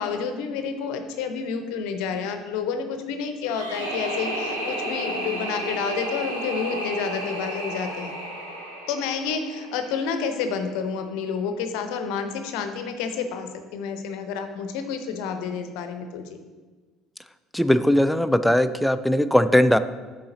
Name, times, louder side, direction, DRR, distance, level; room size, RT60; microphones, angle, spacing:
voice 1, 0.0-8.1 8.9-16.3, left 6 dB, 60° left, 7 dB, 0.6 m, -29 dB
sound 1, 3.4-10.4, right 1 dB, 80° right, 1.0 m, -32 dB
voice 2, 17.5-19.8, left 1 dB, 5° left, 12 dB, 0.3 m, -19 dB
7.5 x 3.9 x 3.9 m, 1.3 s
figure-of-eight pair, 60°, 0 cm